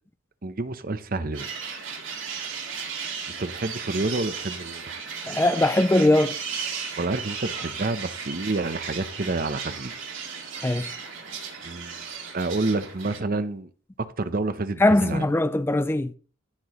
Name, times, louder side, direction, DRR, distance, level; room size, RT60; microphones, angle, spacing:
voice 1, 0.4-1.5 3.3-4.8 7.0-9.9 11.2-11.3 11.6-12.0 12.3-13.7 14.0-15.3, right 2 dB, 45° right, 0.8 m, -29 dB
sound 1, 1.3-13.2, right 6 dB, 80° right, 3.0 m, -35 dB
voice 2, 5.3-6.4 10.6-10.9 14.8-16.1, left 1 dB, 10° left, 0.4 m, -21 dB
16.0 x 6.0 x 3.1 m
head